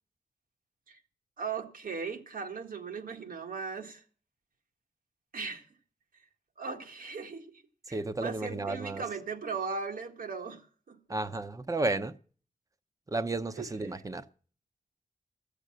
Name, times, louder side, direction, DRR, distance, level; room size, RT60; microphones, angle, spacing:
voice 1, 1.4-4.0 5.3-5.7 6.6-7.6 7.9-11.0 13.6-13.7, right 5 dB, 90° right, 1.7 m, -38 dB
voice 2, 7.9-9.0 11.1-12.1 13.1-14.2, right 2 dB, 25° right, 0.7 m, -32 dB
14.5 x 6.8 x 7.4 m
wide cardioid pair, 165°, 14 cm